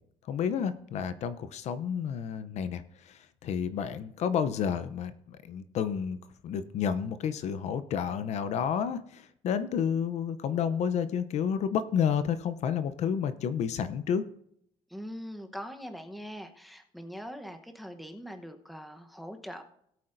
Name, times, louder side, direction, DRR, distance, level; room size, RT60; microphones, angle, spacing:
voice 1, 0.3-6.2 6.4-14.2, left 7 dB, 55° left, 12 dB, 0.6 m, -30 dB
voice 2, 14.9-19.6, equal, ahead, 5 dB, 0.9 m, -42 dB
18.0 x 8.4 x 2.6 m, 0.70 s
cardioid pair, 150°, 14 cm